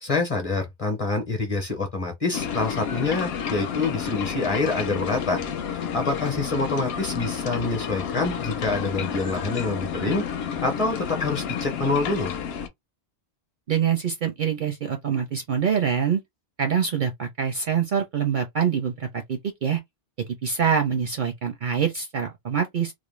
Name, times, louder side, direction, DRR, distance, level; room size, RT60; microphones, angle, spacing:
voice 1, 0.0-5.4 5.9-10.2 10.6-12.3, left 3 dB, 35° left, 0.7 m, -26 dB
sound 1, 2.3-12.7, left 7 dB, 65° left, 0.8 m, -30 dB
voice 2, 13.7-16.2 16.6-19.8 20.4-22.9, right 7 dB, 60° right, 0.6 m, -25 dB
2.5 x 2.0 x 3.0 m
omnidirectional pair, 1.2 m